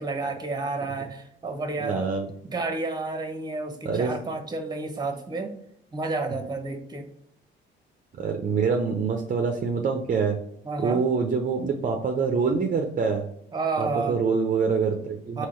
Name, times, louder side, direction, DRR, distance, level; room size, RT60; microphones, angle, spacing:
voice 1, 0.0-2.1 2.4-5.5 5.9-7.1 10.6-11.0 13.5-14.2 15.4-15.5, right 3 dB, 20° right, 6 dB, 0.9 m, -30 dB
voice 2, 1.8-2.3 3.8-4.1 8.2-10.4 10.8-13.2 13.8-15.5, right 5 dB, 40° right, 3 dB, 0.6 m, -25 dB
3.8 x 2.8 x 4.4 m, 0.70 s
cardioid pair, 90°, 20 cm